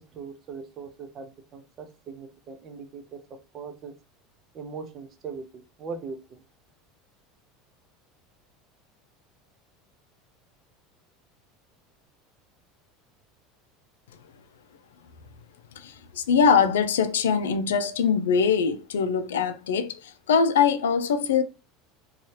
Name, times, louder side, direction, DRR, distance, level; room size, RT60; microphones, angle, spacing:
voice 1, 0.1-3.2 3.5-3.9 4.5-6.4, right 5 dB, 40° right, 0.6 m, -40 dB
voice 2, 15.8-21.4, left 6 dB, 90° left, 0.3 m, -23 dB
2.7 x 2.3 x 3.0 m
hypercardioid pair, 95°, 0 cm